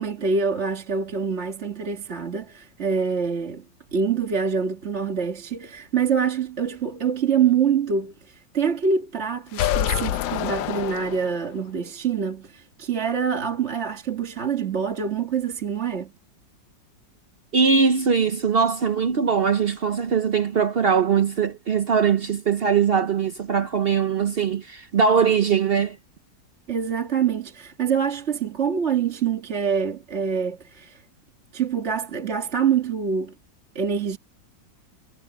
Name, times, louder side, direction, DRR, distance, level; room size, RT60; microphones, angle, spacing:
voice 1, 0.0-3.7 3.9-16.1 26.7-31.0 31.5-33.4 33.8-34.2, right 6 dB, 40° right, 1.9 m, -25 dB
sound 1, 9.5-11.6, left 12 dB, 80° left, 1.4 m, -26 dB
voice 2, 17.5-26.0, right 6 dB, 70° right, 0.5 m, -21 dB
omnidirectional pair, 2.0 m